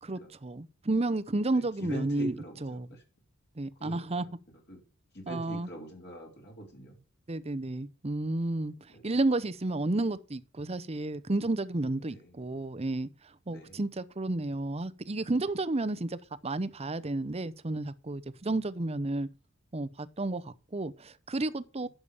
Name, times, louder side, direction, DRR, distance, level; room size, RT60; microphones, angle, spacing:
voice 1, 0.0-2.3 2.6-2.9 3.6-4.2 5.3-5.7 7.3-8.7 9.0-13.1 13.5-19.3 19.7-21.9, right 2 dB, 30° right, 0.7 m, -31 dB
voice 2, 1.5-3.0 3.8-4.3 4.7-4.8 5.1-7.0 8.9-9.0 12.0-12.4 13.5-13.8 21.8-21.9, right 1 dB, 50° left, 3.8 m, -43 dB
11.0 x 7.0 x 4.9 m
head